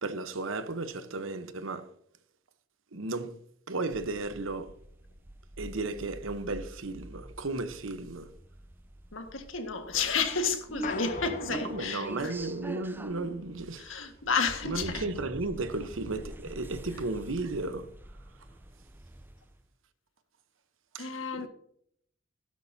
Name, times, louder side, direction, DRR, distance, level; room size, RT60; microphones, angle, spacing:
voice 1, 0.0-1.9 2.9-3.4 3.7-4.7 5.6-8.3 11.5-14.1 14.7-17.9 20.9-21.5, right 2 dB, 85° right, 1.0 m, -34 dB
sound 1, 3.9-19.6, right 1 dB, 10° right, 0.5 m, -45 dB
voice 2, 9.1-12.3 13.8-15.1 21.0-21.5, left 5 dB, 85° left, 1.7 m, -31 dB
sound 2, 10.8-13.3, left 4 dB, 40° left, 0.8 m, -42 dB
15.5 x 12.0 x 2.8 m
head